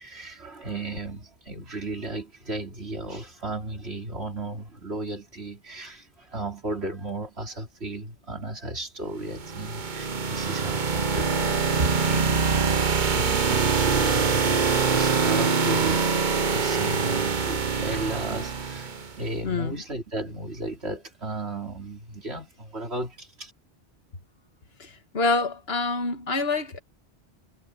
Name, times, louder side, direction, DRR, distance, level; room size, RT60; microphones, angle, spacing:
voice 1, 0.0-23.5, right 2 dB, 90° right, 4.1 m, -34 dB
sound 1, 9.3-19.2, right 5 dB, 50° right, 1.1 m, -24 dB
voice 2, 19.4-19.8 24.8-26.8, left 3 dB, 75° left, 1.9 m, -27 dB
omnidirectional pair, 1.1 m